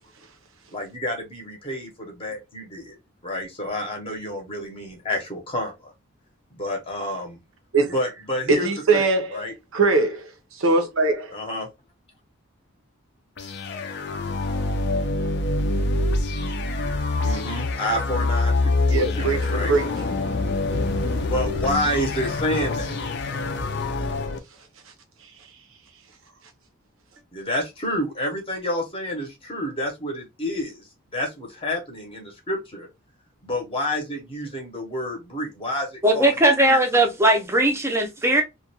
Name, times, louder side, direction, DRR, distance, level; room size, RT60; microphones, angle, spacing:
voice 1, 0.7-3.0 3.2-5.7 6.5-7.4 7.9-9.0 9.3-9.5 11.3-11.7 17.2-19.7 21.2-22.9 27.3-30.8 31.1-32.9 33.4-36.5, left 1 dB, 25° left, 0.7 m, -29 dB
voice 2, 8.5-9.4 9.7-11.4 18.9-19.8, right 3 dB, 75° right, 0.7 m, -21 dB
sound 1, 13.4-24.4, left 2 dB, 50° left, 0.4 m, -25 dB
voice 3, 36.0-38.4, right 1 dB, 10° right, 0.5 m, -19 dB
2.4 x 2.2 x 2.7 m
head